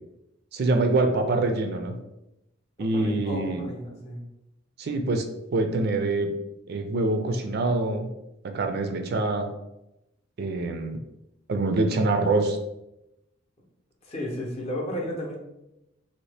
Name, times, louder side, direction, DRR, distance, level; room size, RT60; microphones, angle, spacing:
voice 1, 0.5-1.9 2.8-3.7 4.8-5.2 5.5-6.3 6.7-8.1 8.5-9.5 10.4-11.0 11.5-12.6, right 2 dB, 55° right, 5 dB, 0.4 m, -25 dB
voice 2, 2.8-4.2 14.0-15.4, left 1 dB, 30° left, -1 dB, 0.7 m, -33 dB
2.8 x 2.7 x 3.2 m, 0.90 s
head